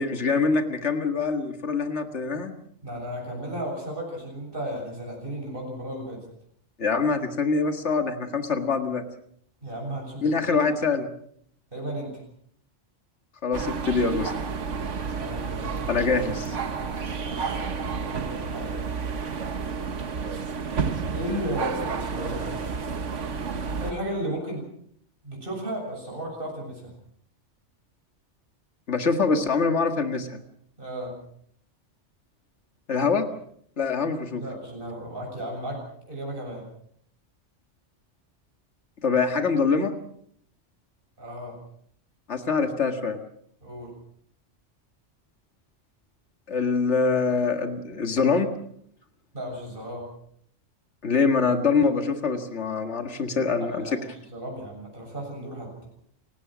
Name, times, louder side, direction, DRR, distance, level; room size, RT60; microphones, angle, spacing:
voice 1, 0.0-2.5 6.8-9.0 10.2-11.1 13.4-14.3 15.9-16.6 28.9-30.4 32.9-33.3 33.8-34.4 39.0-39.9 42.3-43.2 46.5-48.5 51.0-53.8, left 4 dB, 70° left, 6 dB, 2.1 m, -24 dB
voice 2, 2.8-6.2 9.6-10.3 11.7-12.2 15.0-15.9 17.2-18.8 21.1-22.6 23.8-24.6 25.2-26.9 30.8-31.1 34.4-35.8 36.1-36.6 41.2-41.5 43.6-43.9 49.3-50.1 53.6-55.9, right 1 dB, 45° right, 0 dB, 7.6 m, -34 dB
sound 1, 13.5-23.9, right 5 dB, 80° right, 1.7 m, -31 dB
29.5 x 17.5 x 6.2 m, 0.67 s
omnidirectional pair, 1.2 m